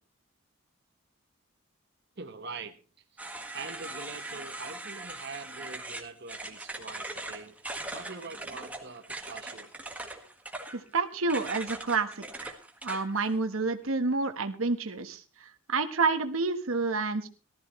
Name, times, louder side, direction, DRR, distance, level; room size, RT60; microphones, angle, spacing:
voice 1, 2.2-2.8 3.5-7.6 7.9-9.7, right 4 dB, 55° right, 6 dB, 1.2 m, -43 dB
sound 1, 3.2-13.3, right 2 dB, 5° right, 1.7 m, -40 dB
voice 2, 10.7-12.5 12.8-15.2 15.7-17.3, right 4 dB, 80° right, 7 dB, 1.3 m, -29 dB
19.0 x 13.5 x 3.2 m, 0.36 s
head